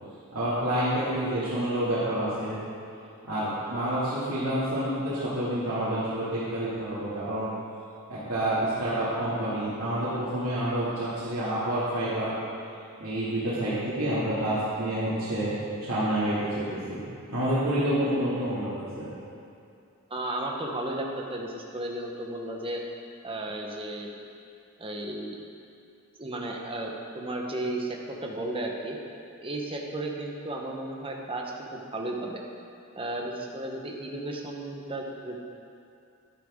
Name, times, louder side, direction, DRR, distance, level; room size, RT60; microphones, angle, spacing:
voice 1, 0.3-2.6 3.2-7.5 8.1-12.3 13.0-15.5 15.8-19.1, right 1 dB, 80° right, -12 dB, 2.6 m, -28 dB
voice 2, 20.1-22.8 23.2-24.1 24.8-25.4 26.2-29.0 29.4-32.4 32.9-35.4, right 1 dB, 25° right, 0 dB, 1.2 m, -34 dB
12.0 x 10.0 x 3.8 m, 2.5 s
head